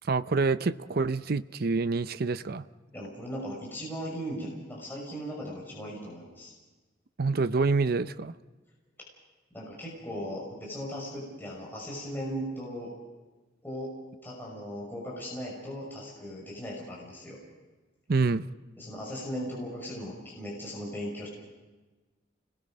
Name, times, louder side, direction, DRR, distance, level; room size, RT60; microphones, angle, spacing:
voice 1, 0.0-2.6 7.2-8.3 18.1-18.5, right 4 dB, 55° right, 13 dB, 0.6 m, -27 dB
voice 2, 2.9-6.5 9.5-12.9 13.6-13.9 14.2-17.4 18.8-21.3, equal, 10° left, -4 dB, 6.0 m, -38 dB
30.0 x 21.0 x 5.2 m, 1.2 s
head